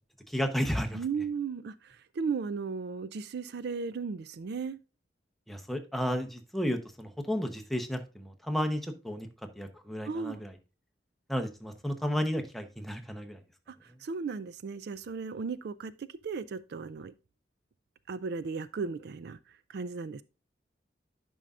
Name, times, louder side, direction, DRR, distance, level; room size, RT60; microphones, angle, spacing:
voice 1, 0.3-1.0 5.5-9.3 9.6-10.5 11.3-13.4, equal, ahead, 0.8 m, -32 dB
voice 2, 0.9-4.8 10.1-10.4 13.7-17.1 18.1-19.4 19.7-20.2, right 5 dB, 60° right, 0.4 m, -36 dB
10.5 x 5.5 x 2.4 m
head